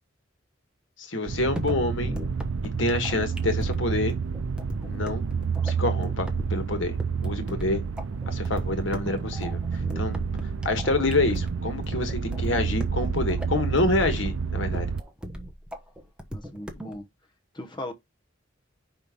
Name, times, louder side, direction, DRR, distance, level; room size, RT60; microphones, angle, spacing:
voice 1, 1.0-2.1 2.8-4.1 4.8-5.2 5.6-6.9 7.2-7.8 8.3-9.6 9.9-10.2 10.6-14.8, left 2 dB, 70° left, 1.6 m, -27 dB
sound 1, 1.3-15.0, right 5 dB, 85° right, 0.5 m, -29 dB
sound 2, 1.6-17.0, equal, 5° right, 1.1 m, -39 dB
voice 2, 16.3-17.0 17.5-17.9, left 1 dB, 25° left, 1.1 m, -37 dB
5.5 x 4.3 x 5.2 m
head